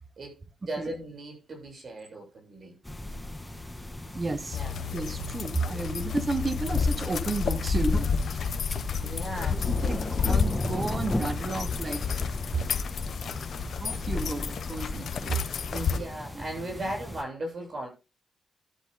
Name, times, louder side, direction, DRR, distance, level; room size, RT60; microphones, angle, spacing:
voice 1, 0.7-2.8 4.6-4.9 9.0-10.3 12.5-12.7 13.3-14.3 15.2-17.9, right 1 dB, 50° right, 7.7 m, -38 dB
sound 1, 2.8-17.2, left 1 dB, 10° left, 2.0 m, -38 dB
voice 2, 4.1-4.6 4.9-8.5 9.5-12.0 13.8-15.3 16.3-16.4, right 3 dB, 30° right, 1.2 m, -32 dB
sound 2, 4.5-16.0, left 6 dB, 70° left, 1.1 m, -30 dB
13.5 x 13.0 x 2.3 m
cardioid pair, 95°, 0 cm